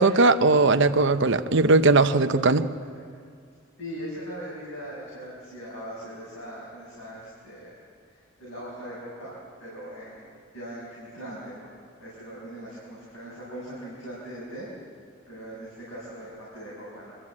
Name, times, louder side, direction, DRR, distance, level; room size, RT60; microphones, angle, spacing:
voice 1, 0.0-2.6, right 3 dB, 55° right, 0.8 m, -19 dB
voice 2, 3.8-7.8 8.1-11.7 12.0-14.7 15.3-17.2, equal, 70° left, 6.2 m, -40 dB
25.0 x 13.5 x 8.6 m
head